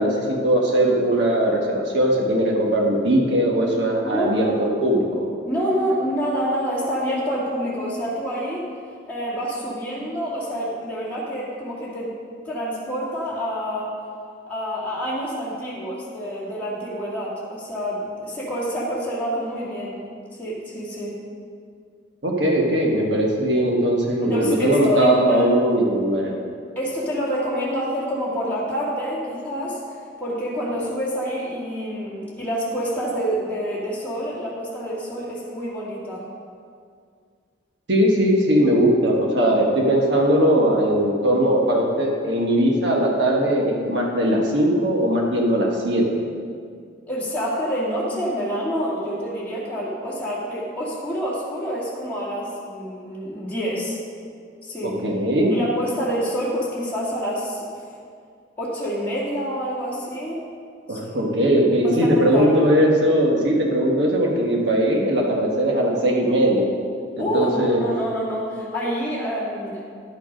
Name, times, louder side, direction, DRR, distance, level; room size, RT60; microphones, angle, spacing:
voice 1, 0.0-5.3 22.2-26.3 37.9-46.3 55.0-55.6 60.9-66.7 67.2-67.8, right 1 dB, 70° right, -1 dB, 1.5 m, -19 dB
voice 2, 4.0-4.6 5.5-8.7 9.1-12.1 12.4-14.0 14.5-20.0 20.3-21.2 24.2-25.4 26.8-29.8 30.2-36.3 47.1-54.0 54.6-55.0 55.5-57.8 58.6-60.4 60.9-61.1 61.8-62.7 67.2-69.8, equal, 10° left, -8 dB, 2.0 m, -27 dB
11.0 x 6.4 x 5.2 m, 2.2 s
head